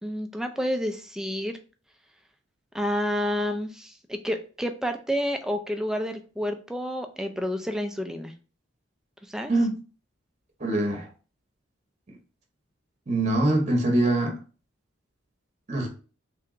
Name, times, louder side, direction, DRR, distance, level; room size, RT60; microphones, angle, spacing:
voice 1, 0.0-1.6 2.7-8.3 9.3-9.5, equal, 5° right, 6 dB, 0.3 m, -29 dB
voice 2, 10.6-11.1 13.1-14.3 15.7-15.9, right 1 dB, 35° right, 2 dB, 0.8 m, -23 dB
3.3 x 2.9 x 3.6 m, 0.36 s
head